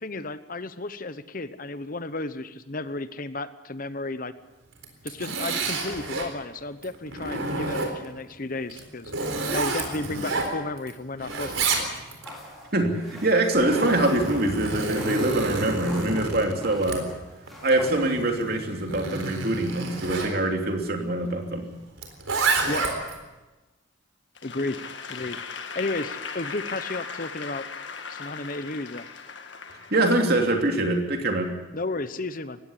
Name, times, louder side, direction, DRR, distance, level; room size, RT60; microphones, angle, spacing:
voice 1, 0.0-4.3 5.0-9.1 9.5-11.9 22.7-22.8 24.4-24.8 25.1-25.4 25.7-27.7 28.1-29.1 31.7-32.6, left 2 dB, 45° left, 13 dB, 0.9 m, -33 dB
Zipper (clothing), 4.7-6.3 6.8-8.2 8.7-10.9 11.2-12.3 13.2-20.3 22.0-23.2, right 3 dB, 85° right, 4.0 m, -29 dB
sound 1, 11.3-18.5, left 1 dB, ahead, 4.9 m, -47 dB
voice 2, 12.7-17.1 17.6-21.7 29.9-31.5, right 1 dB, 50° right, 3 dB, 3.1 m, -24 dB
Applause / Crowd, 24.4-30.6, left 5 dB, 65° left, 1.7 m, -38 dB
20.5 x 16.5 x 8.4 m, 1.1 s
head